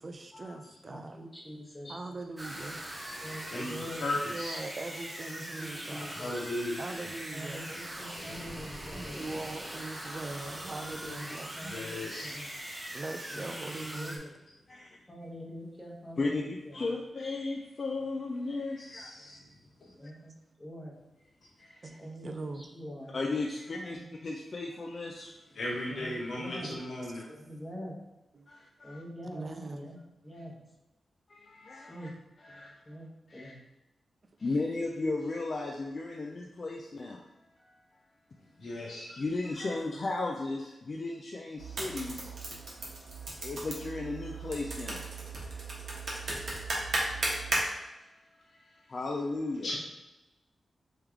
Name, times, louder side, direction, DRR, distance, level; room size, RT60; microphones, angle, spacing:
voice 1, 0.0-1.2 1.9-2.8 4.3-6.2 6.8-7.7 9.0-11.6 12.9-14.3 19.4-19.6 21.8-22.7 26.6-27.2 28.3-28.5 29.3-29.9 32.5-32.8, right 2 dB, 40° right, 0.5 m, -41 dB
voice 2, 0.8-1.9 3.2-4.1 5.3-6.3 7.3-9.3 10.6-12.5 13.3-13.5 13.9-14.3 15.1-16.9 19.9-20.9 22.0-23.4 23.7-24.1 25.8-26.7 27.3-27.9 28.8-29.4 29.7-30.0 30.2-30.6 31.9-32.1 32.9-33.6, equal, 20° left, 1.1 m, -45 dB
sound 1, 2.4-14.2, right 1 dB, 20° right, 0.8 m, -41 dB
voice 3, 4.0-4.6 6.0-6.8 11.6-12.3 19.8-19.9 25.6-27.2 38.6-39.2 49.6-49.7, left 1 dB, 65° left, 1.2 m, -36 dB
voice 4, 16.2-19.4 21.6-22.0 23.1-25.4 28.5-29.0 31.3-32.1 32.4-33.0 33.3-33.5 34.4-37.3 37.6-38.0 39.2-42.3 42.8-49.7, left 3 dB, 50° left, 0.4 m, -36 dB
sound 2, 41.6-47.6, right 2 dB, 65° right, 1.1 m, -35 dB
3.4 x 3.1 x 3.5 m
cardioid pair, 80°, 0 cm